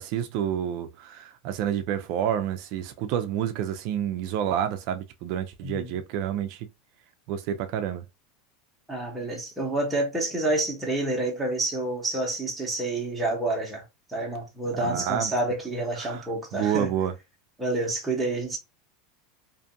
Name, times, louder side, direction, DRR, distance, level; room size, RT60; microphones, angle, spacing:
voice 1, 0.0-6.7 7.3-8.0 14.8-15.3 16.0-16.2 16.5-17.1, right 9 dB, 60° right, 0.4 m, -29 dB
voice 2, 8.9-13.8 14.1-16.9 17.6-18.6, right 2 dB, 5° right, 0.9 m, -28 dB
2.5 x 2.4 x 2.6 m
supercardioid pair, 135°, 0 cm